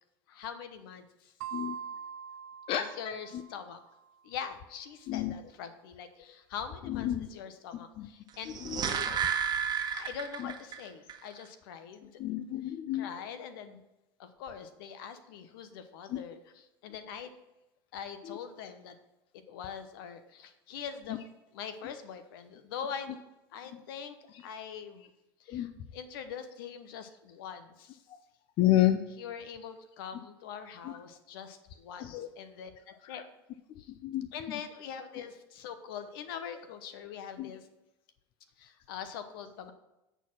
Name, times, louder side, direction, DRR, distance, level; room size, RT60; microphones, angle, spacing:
voice 1, 0.3-1.3 2.8-3.8 4.2-8.6 9.9-12.2 12.6-13.8 14.2-17.3 17.9-18.9 19.3-21.2 21.5-23.2 23.5-25.1 25.4-28.0 29.2-33.2 33.8-33.9 34.3-37.7 38.6-39.7, left 7 dB, 75° left, 9 dB, 1.0 m, -43 dB
sound 1, 1.4-3.9, right 8 dB, 75° right, 0.5 m, -43 dB
voice 2, 2.7-3.1 5.1-5.3 6.9-7.3 8.0-8.1 8.6-9.2 10.4-10.5 12.2-13.1 16.1-16.2 18.2-18.4 25.5-25.7 28.6-29.0 30.8-30.9 32.0-32.3 34.0-34.3 37.4-37.5, left 13 dB, 50° left, 9 dB, 0.6 m, -30 dB
sound 2, 8.3-10.8 11.1-11.2, right 7 dB, 35° right, 1.2 m, -31 dB
8.1 x 4.6 x 5.9 m, 0.93 s
hypercardioid pair, 100°, 12 cm